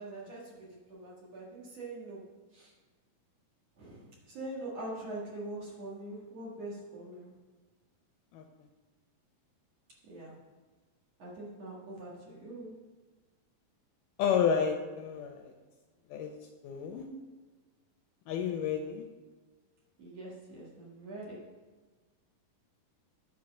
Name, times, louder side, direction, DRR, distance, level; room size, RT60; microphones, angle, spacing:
voice 1, 0.0-2.3 2.5-2.7 3.8-7.3 10.0-10.4 11.2-12.7 20.0-21.5, right 2 dB, 50° right, -5 dB, 2.5 m, -43 dB
voice 2, 14.2-15.5 16.1-16.3 16.6-17.1 18.3-19.1, left 7 dB, 80° left, 4 dB, 2.0 m, -30 dB
9.6 x 4.6 x 6.3 m, 1.3 s
omnidirectional pair, 4.2 m